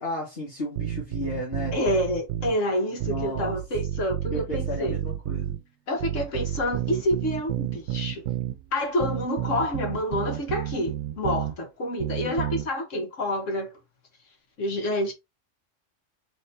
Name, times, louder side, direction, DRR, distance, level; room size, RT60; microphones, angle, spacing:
voice 1, 0.0-1.8 3.0-3.5 4.3-5.6 12.2-12.5, left 1 dB, 50° left, 1.7 m, -34 dB
sound 1, 0.8-2.6 3.0-5.6 6.0-8.6 9.0-11.5 12.0-12.7, right 12 dB, 80° right, 0.9 m, -30 dB
voice 2, 1.7-5.0 5.9-8.2 8.7-13.7 14.6-15.1, left 1 dB, 80° left, 1.6 m, -28 dB
4.1 x 3.4 x 3.2 m
omnidirectional pair, 1.3 m